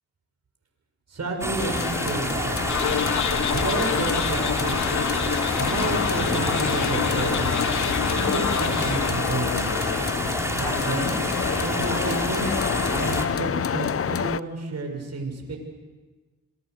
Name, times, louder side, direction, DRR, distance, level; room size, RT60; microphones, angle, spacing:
voice 1, 1.1-2.6 3.5-5.1 5.6-7.6 8.1-9.7 10.5-11.2 11.6-12.6 12.9-15.6, right 3 dB, 50° right, 2 dB, 6.5 m, -31 dB
sound 1, 1.4-13.3, equal, 10° right, 4.3 m, -28 dB
sound 2, 1.6-14.4, left 7 dB, 40° left, 0.8 m, -28 dB
sound 3, 2.7-9.1, left 8 dB, 55° left, 1.1 m, -29 dB
26.5 x 22.0 x 8.1 m, 1.3 s
supercardioid pair, 45°, 34 cm